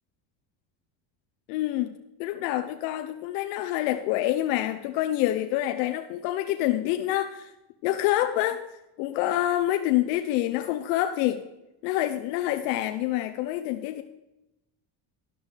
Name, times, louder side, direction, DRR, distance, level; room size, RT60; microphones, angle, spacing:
voice 1, 1.5-1.9 2.2-7.5 7.8-8.6 9.0-11.4 11.8-14.0, left 14 dB, 85° left, 8 dB, 0.9 m, -27 dB
12.5 x 11.5 x 3.4 m, 0.92 s
supercardioid pair, 95°, 49 cm